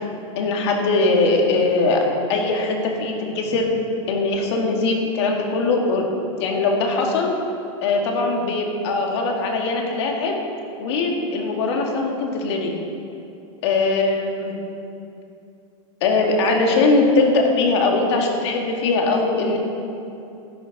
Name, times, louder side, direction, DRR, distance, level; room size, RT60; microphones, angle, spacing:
voice 1, 0.4-2.0 2.3-3.7 4.1-6.0 6.4-7.3 7.8-10.4 10.8-12.7 13.6-14.5 16.0-19.6, left 3 dB, 60° left, 1 dB, 1.9 m, -21 dB
13.0 x 11.5 x 4.1 m, 2.7 s
supercardioid pair, 165°, 17 cm